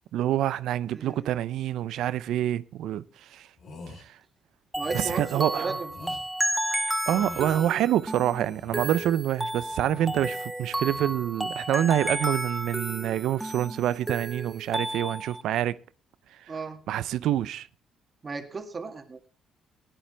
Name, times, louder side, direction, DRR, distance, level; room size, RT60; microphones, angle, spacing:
voice 1, 0.1-3.0 3.3-3.5 4.9-5.8 7.1-15.8 16.9-17.7, right 12 dB, 80° right, 0.5 m, -26 dB
voice 2, 0.9-1.3 4.8-6.1 16.5-16.8 18.2-19.3, right 4 dB, 35° right, 2.0 m, -36 dB
sound 1, 3.6-4.0 4.8-5.2 5.9-6.2 7.1-7.7 8.4-9.1 9.7-10.4 10.7-11.1, left 3 dB, 65° left, 4.5 m, -44 dB
sound 2, 4.7-15.4, right 1 dB, 15° right, 0.6 m, -32 dB
17.0 x 10.0 x 3.3 m
cardioid pair, 75°, 0 cm